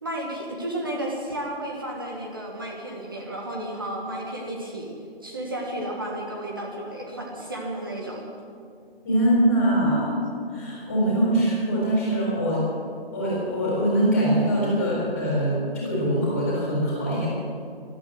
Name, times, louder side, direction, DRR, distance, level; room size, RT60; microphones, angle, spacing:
voice 1, 0.0-4.8 5.2-8.2, right 1 dB, 20° right, -2 dB, 1.5 m, -32 dB
voice 2, 9.0-10.1 10.5-12.6 13.1-17.3, right 1 dB, 15° left, -5 dB, 4.1 m, -23 dB
14.0 x 12.5 x 7.6 m, 2.4 s
figure-of-eight pair, 170°, 31 cm